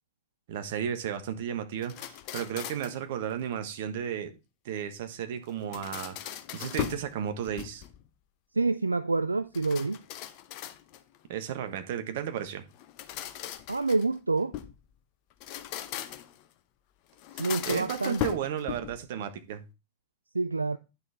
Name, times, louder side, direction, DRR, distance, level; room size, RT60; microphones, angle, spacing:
voice 1, 0.5-4.3 4.6-7.8 11.3-12.6 17.7-19.6, right 9 dB, 55° right, 1.3 m, -34 dB
sound 1, 1.8-3.0 5.5-7.1 7.4-8.1 9.5-11.2 12.7-14.8 15.3-16.4 17.2-19.0, left 12 dB, 45° left, 0.8 m, -38 dB
voice 2, 8.5-10.0 13.7-14.6 17.4-18.4 20.3-20.8, right 3 dB, 80° right, 0.3 m, -27 dB
9.7 x 6.3 x 3.4 m
figure-of-eight pair, 90°, 0 cm